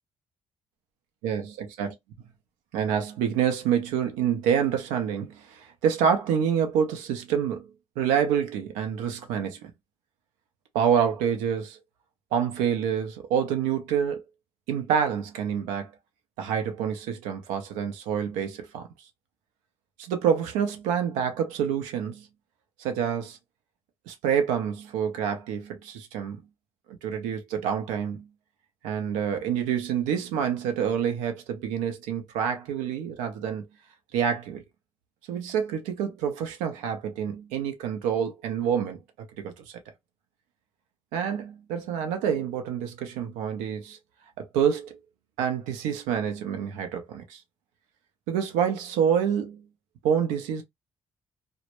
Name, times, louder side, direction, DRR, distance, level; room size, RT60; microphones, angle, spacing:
voice 1, 1.2-1.9 2.7-7.7 8.0-9.7 10.7-11.8 12.3-14.2 14.7-15.9 16.4-18.9 20.0-22.3 22.8-23.4 24.1-26.4 26.9-28.3 28.8-33.7 34.1-34.6 35.3-39.0 39.4-39.8 41.1-44.0 44.4-45.0 45.4-47.4 48.3-49.6 50.0-50.6, right 8 dB, 80° right, 0.6 m, -27 dB
2.1 x 2.1 x 2.9 m
hypercardioid pair, 50°, 13 cm